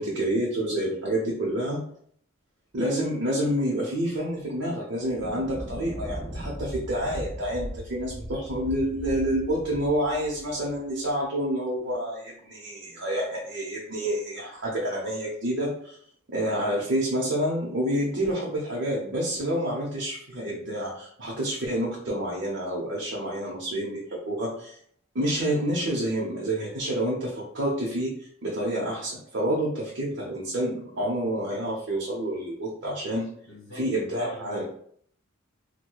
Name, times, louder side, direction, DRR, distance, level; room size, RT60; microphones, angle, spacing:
voice 1, 0.0-1.8 2.7-16.0 16.3-24.8 25.1-33.3 33.7-34.6, right 1 dB, 65° right, -5 dB, 0.8 m, -28 dB
sound 1, 4.4-4.5 5.0-11.1, equal, 10° right, 0.3 m, -38 dB
voice 2, 33.5-33.8 34.1-34.6, right 1 dB, 65° left, -3 dB, 1.0 m, -43 dB
4.5 x 2.2 x 2.3 m, 0.63 s
head